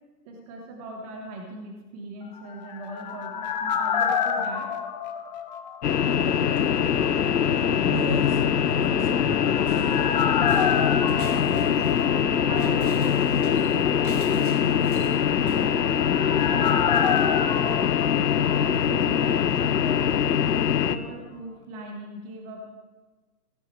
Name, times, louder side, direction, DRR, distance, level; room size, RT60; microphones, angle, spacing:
voice 1, 0.2-4.7 11.1-12.0 12.4-15.7 16.2-17.9 18.6-20.1 20.7-22.7, right 2 dB, 25° right, 1 dB, 1.5 m, -40 dB
sound 1, 2.4-6.2 6.5-6.6 9.0-12.7 13.0-13.1 15.3-19.2 19.4-19.5, left 7 dB, 30° left, 0.7 m, -29 dB
sound 2, 5.8-21.0, left 8 dB, 85° left, 0.9 m, -23 dB
voice 2, 7.8-10.0, equal, 85° right, 1 dB, 4.7 m, -35 dB
sound 3, 9.7-15.7, right 2 dB, 65° right, 3.8 m, -44 dB
16.5 x 7.8 x 4.7 m, 1.3 s
hypercardioid pair, 150°, 47 cm